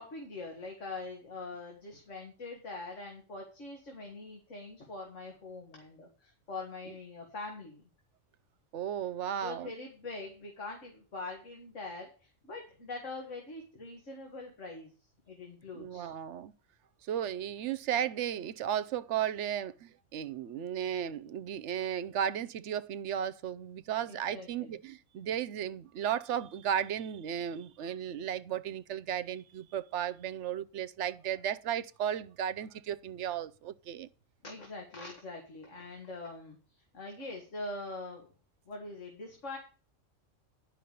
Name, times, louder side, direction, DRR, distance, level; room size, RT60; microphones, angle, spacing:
voice 1, 0.0-7.8 9.4-14.9 15.3-16.1 24.1-24.7 34.4-36.6 36.9-38.3 38.7-39.6, left 3 dB, 75° left, 2.2 m, -43 dB
voice 2, 8.7-9.7 15.7-16.5 17.1-34.1, right 9 dB, 70° right, 0.9 m, -35 dB
10.0 x 5.8 x 6.7 m
omnidirectional pair, 1.3 m